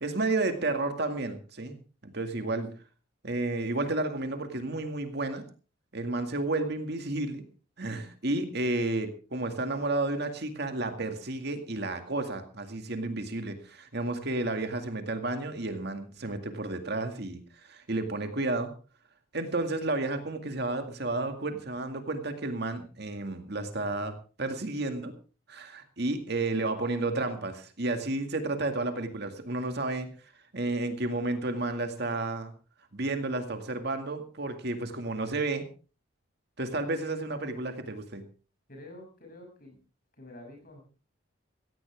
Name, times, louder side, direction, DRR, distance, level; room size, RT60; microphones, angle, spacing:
voice 1, 0.0-1.8 2.0-2.7 3.2-5.4 5.9-7.4 7.8-17.4 17.7-18.7 19.3-25.1 25.5-30.1 30.5-32.5 32.9-35.6 36.6-38.2, right 2 dB, 55° right, 7 dB, 2.1 m, -31 dB
voice 2, 38.7-39.8 40.2-40.8, left 1 dB, 45° left, 3 dB, 6.8 m, -48 dB
16.5 x 15.5 x 3.6 m, 0.35 s
head